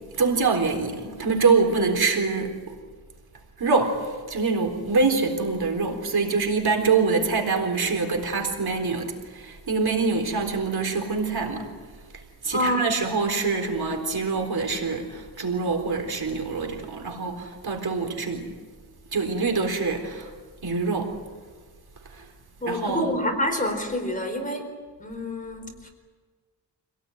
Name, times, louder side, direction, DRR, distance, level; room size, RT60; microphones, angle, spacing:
voice 1, 0.2-2.7 3.6-4.0 4.3-11.7 12.4-18.5 19.1-20.3 20.6-21.1 22.7-23.1, right 4 dB, 65° right, 4 dB, 4.0 m, -25 dB
voice 2, 12.5-12.9 22.6-24.7 25.0-25.9, equal, 20° left, 4 dB, 4.4 m, -27 dB
26.5 x 18.0 x 9.2 m, 1.5 s
wide cardioid pair, 110°, 41 cm